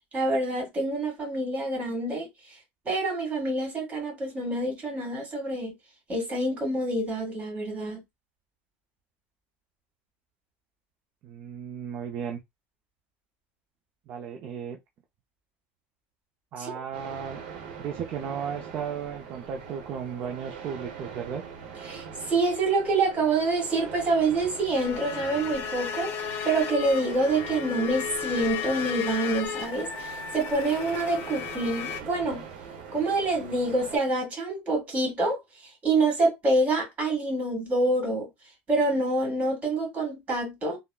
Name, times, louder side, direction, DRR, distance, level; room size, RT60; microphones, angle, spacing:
voice 1, 0.1-2.3 2.9-5.7 6.1-8.0 16.6-16.7 21.9-26.1 26.4-32.4 32.9-38.3 38.7-40.8, right 2 dB, 25° right, 2.0 m, -26 dB
voice 2, 11.2-12.4 14.1-14.8 16.5-17.4 17.8-21.4, right 7 dB, 40° right, 0.5 m, -35 dB
sound 1, 16.9-34.0, right 6 dB, 85° right, 0.9 m, -42 dB
sound 2, 24.7-32.0, left 8 dB, 45° left, 0.5 m, -35 dB
3.5 x 2.1 x 2.3 m
supercardioid pair, 140°, 5 cm